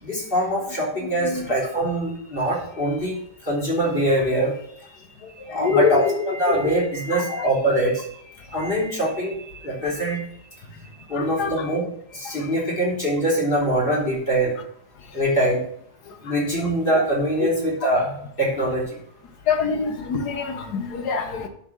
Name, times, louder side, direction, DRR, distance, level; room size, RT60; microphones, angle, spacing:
voice 1, 0.0-5.0 5.4-8.2 8.5-10.3 11.1-11.8 12.1-14.5 15.1-15.6 16.2-19.0, right 1 dB, 25° left, -5 dB, 3.8 m, -23 dB
voice 2, 5.6-6.1 6.5-6.6 7.3-7.5 11.2-11.5 16.6-16.7 19.5-21.5, left 5 dB, 60° left, 6 dB, 1.6 m, -24 dB
10.5 x 4.4 x 6.3 m, 0.68 s
omnidirectional pair, 2.0 m